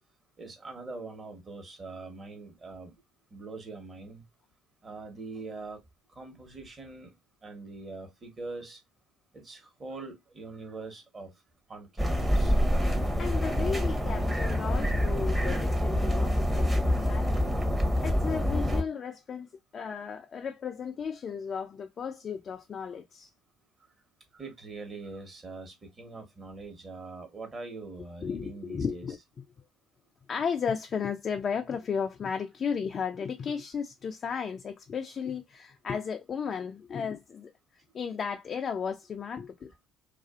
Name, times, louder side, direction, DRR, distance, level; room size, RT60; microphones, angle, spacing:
voice 1, 0.4-2.9 3.3-4.2 4.8-5.8 6.1-7.1 7.4-8.8 9.3-11.3 11.7-12.6 24.3-29.1, right 3 dB, 35° right, 1.1 m, -43 dB
sound 1, 12.0-18.8, equal, 15° right, 0.8 m, -26 dB
voice 2, 13.2-17.6 18.0-23.3 28.2-29.2 30.3-37.5 37.9-39.7, left 6 dB, 45° left, 0.3 m, -34 dB
2.4 x 2.3 x 2.3 m
hypercardioid pair, 65°, 0 cm